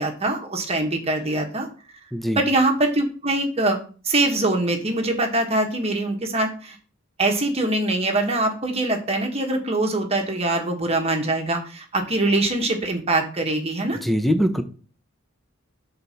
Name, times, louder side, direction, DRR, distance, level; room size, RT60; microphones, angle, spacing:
voice 1, 0.0-1.7 2.4-3.8 4.0-6.8 7.2-14.0, right 2 dB, 30° right, 3 dB, 1.3 m, -23 dB
voice 2, 2.1-2.4 13.9-14.6, equal, ahead, 6 dB, 0.7 m, -22 dB
6.7 x 4.0 x 5.6 m, 0.39 s
head